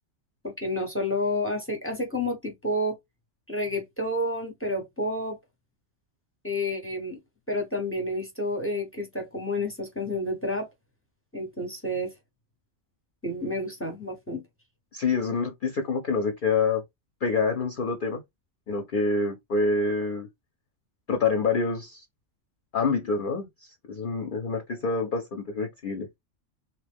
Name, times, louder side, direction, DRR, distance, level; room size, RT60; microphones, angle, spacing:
voice 1, 0.4-3.0 3.5-5.4 6.4-7.2 7.5-10.7 11.3-12.1 13.2-14.4, left 1 dB, 15° left, 0.6 m, -30 dB
voice 2, 14.9-16.8 17.2-18.2 18.7-20.3 21.1-22.0 22.7-23.5 23.9-26.2, left 4 dB, 55° left, 0.6 m, -26 dB
2.9 x 2.2 x 3.4 m
omnidirectional pair, 1.3 m